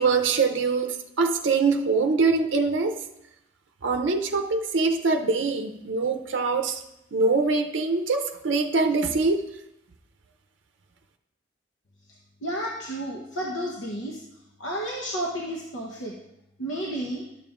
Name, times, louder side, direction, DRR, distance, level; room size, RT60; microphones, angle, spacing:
voice 1, 0.0-3.0 3.8-6.8 7.1-9.5, right 4 dB, 70° right, 4 dB, 0.6 m, -23 dB
voice 2, 12.4-14.2 14.6-16.1 16.6-17.2, right 1 dB, 75° left, -2 dB, 1.0 m, -31 dB
12.0 x 7.0 x 2.4 m, 0.85 s
head